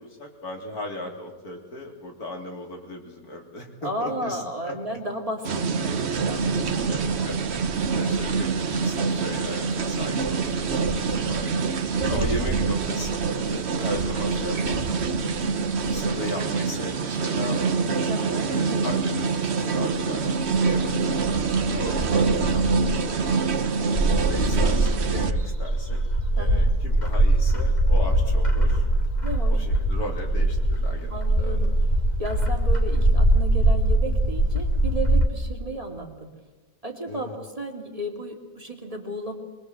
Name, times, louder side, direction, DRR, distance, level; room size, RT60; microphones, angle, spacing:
voice 1, 0.0-4.7 6.9-7.0 7.3-11.7 12.1-15.4 15.9-18.0 18.5-21.4 21.8-23.6 24.1-26.0 26.3-28.8 29.5-31.6 37.1-37.4, left 1 dB, 85° left, 1 dB, 4.0 m, -37 dB
voice 2, 3.8-7.3 11.9-12.3 18.1-18.6 21.7-22.1 26.4-26.7 29.2-29.6 31.1-31.8 32.2-36.3 36.8-39.4, right 1 dB, 25° right, 2 dB, 2.8 m, -34 dB
sound 1, 5.4-25.3, right 4 dB, 50° right, 1.2 m, -25 dB
Bird, 23.9-35.3, right 1 dB, 30° left, 2.7 m, -21 dB
24.0 x 21.5 x 7.8 m, 1.2 s
omnidirectional pair, 1.6 m